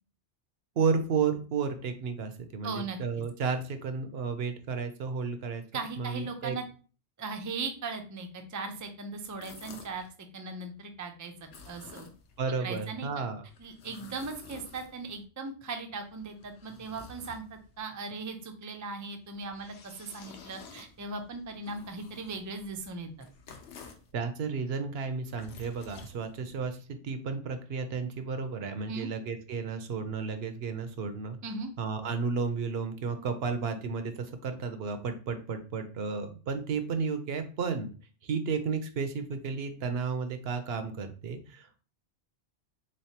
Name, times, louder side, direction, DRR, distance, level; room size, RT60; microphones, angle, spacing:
voice 1, 0.8-6.6 12.4-13.4 24.1-31.4 31.8-37.9 38.2-41.8, right 5 dB, 70° right, 8 dB, 0.8 m, -32 dB
voice 2, 2.6-3.2 5.7-6.6 7.2-10.0 10.3-12.1 12.6-13.1 13.6-23.3 28.9-29.1 31.4-31.7, right 3 dB, 30° right, 5 dB, 0.3 m, -38 dB
sound 1, 9.2-10.1 11.4-12.4 13.5-15.2 16.0-17.8 19.2-24.1 25.1-26.7, left 5 dB, 70° left, 0.9 m, -51 dB
3.9 x 3.2 x 2.8 m, 0.38 s
omnidirectional pair, 1.1 m